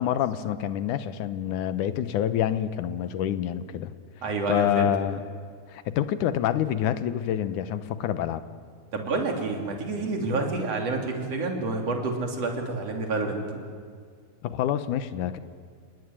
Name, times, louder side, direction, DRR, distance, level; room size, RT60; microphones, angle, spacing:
voice 1, 0.0-3.9 4.5-5.2 5.7-8.4 14.4-15.4, left 10 dB, 80° left, 12 dB, 2.5 m, -27 dB
voice 2, 4.2-4.9 8.9-13.6, right 3 dB, 55° right, 2 dB, 4.1 m, -28 dB
28.5 x 19.0 x 9.9 m, 2.1 s
omnidirectional pair, 3.6 m